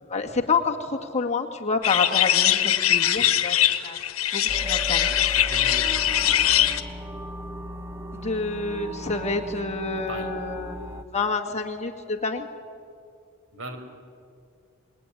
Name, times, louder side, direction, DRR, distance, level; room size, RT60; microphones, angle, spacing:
voice 1, 0.1-4.0 4.3-5.2 8.2-12.5, left 4 dB, 35° left, 2 dB, 2.0 m, -28 dB
sound 1, 1.8-6.8, left 11 dB, 75° left, 1.4 m, -22 dB
sound 2, 4.5-11.0, equal, 10° right, 0.9 m, -36 dB
voice 2, 5.3-7.0 9.9-10.3 13.5-13.8, right 1 dB, 70° right, 6 dB, 4.5 m, -40 dB
27.0 x 20.5 x 9.9 m, 2.3 s
head